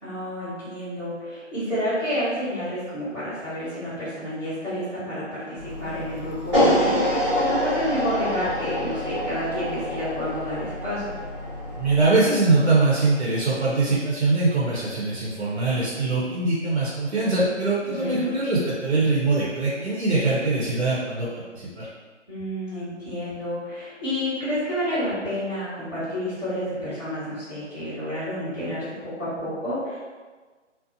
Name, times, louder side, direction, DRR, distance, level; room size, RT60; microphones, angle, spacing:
voice 1, 0.0-11.0 17.8-18.3 22.3-30.0, equal, 10° right, -20 dB, 1.2 m, -30 dB
sound 1, 5.6-12.1, left 2 dB, 35° left, 0.4 m, -37 dB
sound 2, 6.5-12.7, equal, 25° right, 0.9 m, -26 dB
voice 2, 11.8-21.9, right 3 dB, 60° right, -8 dB, 0.8 m, -22 dB
2.6 x 2.0 x 2.7 m, 1.4 s
figure-of-eight pair, 165°, 37 cm